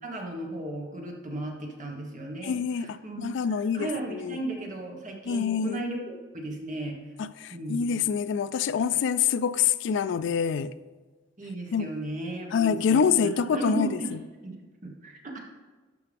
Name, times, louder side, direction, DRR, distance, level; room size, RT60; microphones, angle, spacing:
voice 1, 0.0-7.0 7.5-7.8 11.4-14.1 14.4-15.4, right 1 dB, 40° right, 1.5 m, -35 dB
voice 2, 2.4-4.4 5.3-5.8 7.2-10.7 11.7-11.9 12.5-14.2, left 7 dB, 65° left, 0.3 m, -26 dB
12.0 x 5.8 x 3.5 m
head